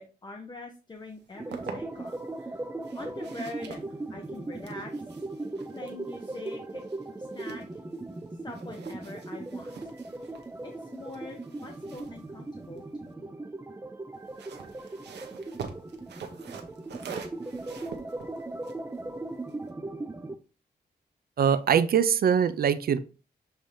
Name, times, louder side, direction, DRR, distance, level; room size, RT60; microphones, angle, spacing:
voice 1, 0.0-2.6 2.9-4.9 5.7-6.8 7.2-7.8 8.4-9.7 10.2-10.3 10.6-13.3, left 2 dB, 25° left, 3 dB, 0.9 m, -44 dB
sound 1, 1.1-2.2 2.8-8.2 8.5-13.1 14.1-19.7, right 6 dB, 90° right, 1.0 m, -46 dB
sound 2, 1.3-20.4, right 2 dB, 15° right, 0.5 m, -38 dB
voice 2, 21.4-23.0, right 8 dB, 60° right, 13 dB, 0.6 m, -22 dB
7.2 x 2.9 x 5.0 m, 0.35 s
wide cardioid pair, 120°, 17 cm